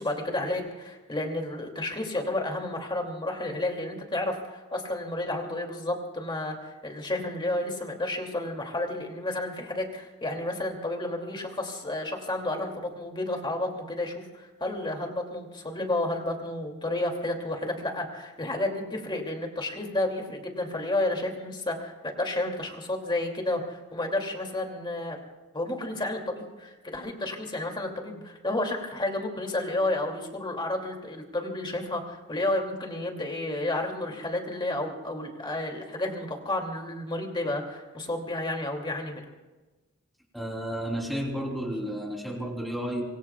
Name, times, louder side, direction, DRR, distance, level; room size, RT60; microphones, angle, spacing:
voice 1, 0.0-25.2 25.5-39.2, left 1 dB, 20° left, 2 dB, 2.6 m, -31 dB
voice 2, 40.3-43.0, equal, ahead, 0 dB, 3.4 m, -32 dB
26.0 x 23.5 x 2.4 m, 1.2 s
head